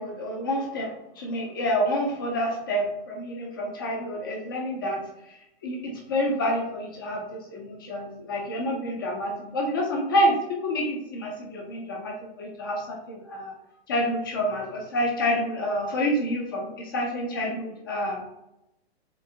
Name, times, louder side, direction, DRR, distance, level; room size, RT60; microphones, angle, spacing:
voice 1, 0.0-5.0 5.6-5.8 6.1-13.5 13.9-18.2, equal, 20° left, 0 dB, 0.4 m, -28 dB
3.6 x 2.4 x 2.6 m, 0.85 s
hypercardioid pair, 165°, 32 cm